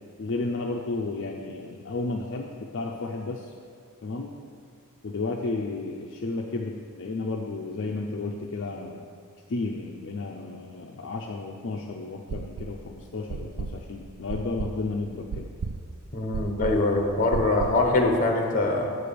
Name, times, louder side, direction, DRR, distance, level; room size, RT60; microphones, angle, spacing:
voice 1, 0.2-3.5 4.0-4.4 5.0-9.1 9.5-15.6, left 3 dB, 55° left, 0 dB, 0.5 m, -32 dB
Heart trouble, 12.3-12.9 13.3-17.9, right 4 dB, 75° right, 0.4 m, -34 dB
voice 2, 16.1-18.9, left 2 dB, 35° left, 2 dB, 0.9 m, -23 dB
7.8 x 4.8 x 6.8 m, 2.2 s
head